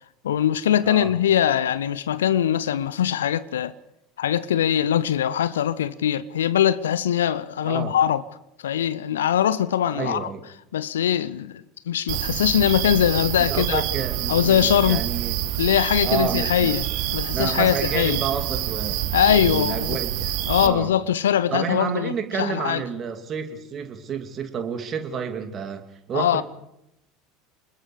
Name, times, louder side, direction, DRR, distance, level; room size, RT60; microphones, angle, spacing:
voice 1, 0.2-3.7 4.2-8.2 8.6-10.3 10.7-13.8 14.3-15.0 15.6-16.9 17.1-18.2 19.1-20.0 20.5-22.8 26.1-26.4, left 10 dB, 70° left, 0.8 m, -22 dB
voice 2, 9.9-10.4 13.4-15.3 16.0-16.8 17.3-19.0 19.3-20.9 21.5-26.4, right 7 dB, 35° right, 2.8 m, -30 dB
sound 1, 12.1-20.7, right 13 dB, 55° right, 1.4 m, -27 dB
28.5 x 21.0 x 4.9 m
figure-of-eight pair, 70°, 0 cm